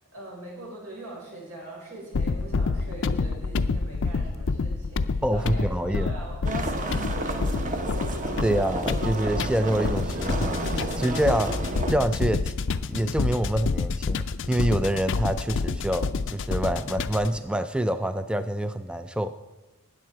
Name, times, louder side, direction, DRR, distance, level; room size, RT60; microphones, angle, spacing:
voice 1, 0.1-7.8, right 2 dB, 80° right, -3 dB, 5.1 m, -43 dB
sound 1, 2.1-17.4, left 4 dB, 60° left, 0.5 m, -28 dB
voice 2, 5.2-6.1 8.4-11.6 11.9-12.5 12.9-19.3, right 1 dB, 5° right, 11 dB, 0.3 m, -26 dB
sound 2, 6.4-11.9, right 2 dB, 35° right, 1.0 m, -31 dB
13.5 x 9.3 x 4.7 m, 1.1 s
head